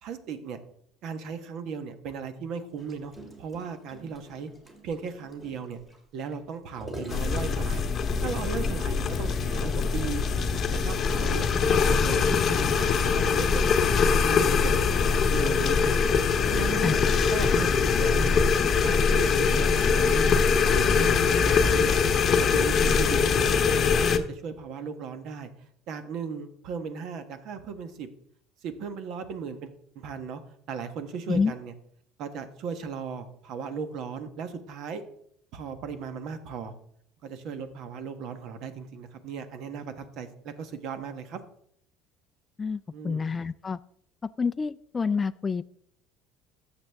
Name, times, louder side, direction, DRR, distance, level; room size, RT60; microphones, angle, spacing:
voice 1, 0.0-0.6 1.0-3.1 3.4-4.5 4.8-5.8 6.1-7.8 8.2-10.3 10.7-13.7 14.1-14.8 15.1-16.0 16.5-17.0 17.3-18.4 18.8-20.3 20.7-21.9 22.5-23.8 24.2-25.5 25.9-28.1 28.6-30.4 30.7-31.7 32.2-35.0 35.5-36.7 37.2-41.4 42.9-43.2, right 6 dB, 60° right, 9 dB, 1.2 m, -37 dB
Gurgling, 2.8-8.3 8.8-8.9 9.2-9.4 9.7-9.8 10.6-13.1 13.7-13.9, right 1 dB, 15° right, 2.0 m, -47 dB
sound 1, 7.1-24.2, left 5 dB, 35° left, 0.9 m, -23 dB
voice 2, 42.6-43.8 44.4-45.6, left 5 dB, 20° left, 12 dB, 0.3 m, -28 dB
13.0 x 7.3 x 3.5 m, 0.67 s
cardioid pair, 125°, 0 cm